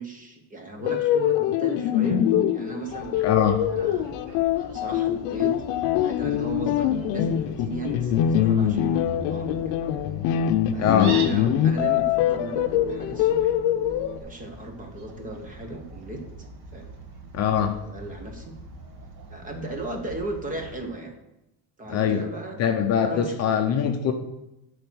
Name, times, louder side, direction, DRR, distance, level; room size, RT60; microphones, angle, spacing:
voice 1, 0.0-2.2 2.5-4.1 4.7-5.6 6.0-9.8 10.7-13.6 14.2-16.2 16.7-16.9 17.7-18.6 19.3-21.1 21.8-22.6 23.0-23.5, right 2 dB, 20° right, 4 dB, 1.1 m, -36 dB
sound 1, 0.8-14.2, left 10 dB, 90° left, 0.7 m, -24 dB
Fowl, 2.9-20.8, right 3 dB, 70° right, 1.8 m, -43 dB
voice 2, 3.2-3.6 10.8-11.2 17.3-17.8 21.9-22.2 22.6-24.1, left 8 dB, 40° left, 5 dB, 0.7 m, -22 dB
11.5 x 4.4 x 6.2 m, 0.90 s
cardioid pair, 170°, 42 cm